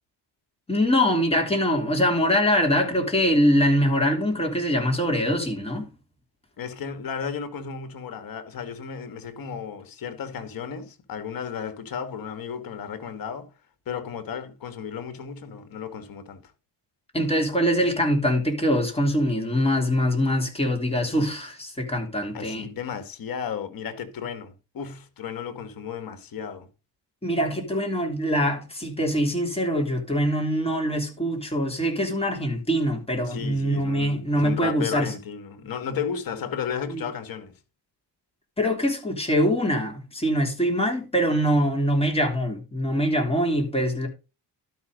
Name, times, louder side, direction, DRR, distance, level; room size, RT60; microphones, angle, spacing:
voice 1, 0.7-5.9 17.1-22.7 27.2-35.1 36.9-37.0 38.6-44.1, equal, 15° left, 3.6 m, -23 dB
voice 2, 6.6-13.5 13.9-16.5 22.3-26.7 33.2-37.5, left 7 dB, 55° left, 2.2 m, -34 dB
12.0 x 5.9 x 5.3 m
cardioid pair, 105°, 41 cm